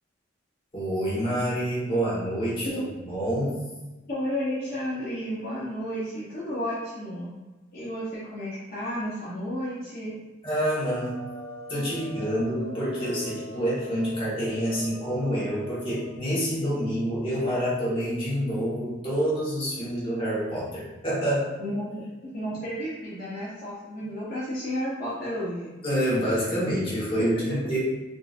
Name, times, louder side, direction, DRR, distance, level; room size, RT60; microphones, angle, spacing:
voice 1, 0.7-2.7 3.1-3.6 10.4-11.2 11.7-21.5 25.8-27.8, equal, 25° left, -8 dB, 1.1 m, -27 dB
voice 2, 4.1-7.3 7.7-10.1 21.6-21.9 22.3-25.7 27.3-27.6, equal, 45° left, -10 dB, 0.8 m, -32 dB
sound 1, 10.5-16.1, right 1 dB, 75° right, 0.8 m, -42 dB
3.7 x 2.6 x 2.4 m, 1.2 s
head